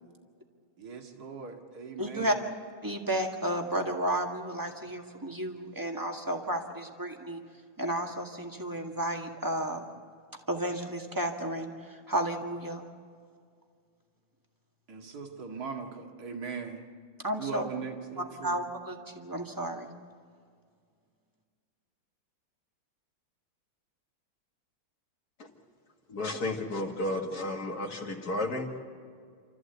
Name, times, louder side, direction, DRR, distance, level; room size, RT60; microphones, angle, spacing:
voice 1, 0.8-2.5 14.9-16.8 17.4-18.6, right 5 dB, 50° right, 2 dB, 2.5 m, -39 dB
voice 2, 2.0-2.4 2.8-7.4 7.8-9.8 10.5-12.8 17.2-17.6 18.4-19.9, right 1 dB, 10° right, 2 dB, 1.7 m, -32 dB
voice 3, 26.1-28.8, left 2 dB, 50° left, 2 dB, 2.5 m, -32 dB
28.5 x 14.0 x 8.1 m, 2.1 s
omnidirectional pair, 2.3 m